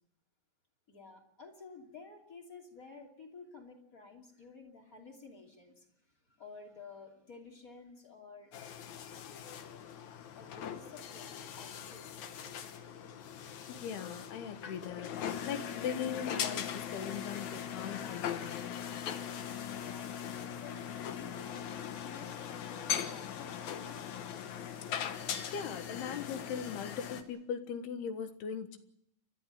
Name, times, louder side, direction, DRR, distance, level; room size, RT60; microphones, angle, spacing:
voice 1, 0.9-5.9 6.3-8.5 10.3-12.6 19.7-20.1 20.6-24.0, left 4 dB, 25° left, 2 dB, 2.7 m, -52 dB
sound 1, 8.5-27.2, left 8 dB, 60° left, 2.2 m, -40 dB
voice 2, 13.7-18.7 25.5-28.8, left 7 dB, 85° left, 9 dB, 3.5 m, -40 dB
29.5 x 12.5 x 9.1 m, 0.74 s
omnidirectional pair, 4.5 m